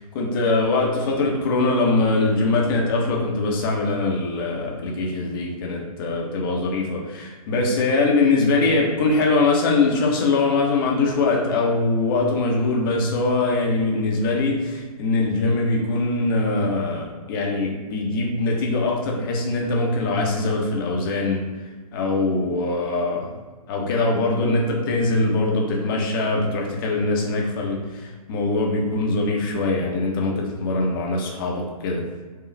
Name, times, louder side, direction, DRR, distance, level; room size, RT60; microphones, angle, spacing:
voice 1, 0.0-21.4 21.9-23.3 23.7-32.0, left 3 dB, 35° left, -1 dB, 0.9 m, -22 dB
4.8 x 2.4 x 3.3 m, 1.4 s
figure-of-eight pair, 130°, 20 cm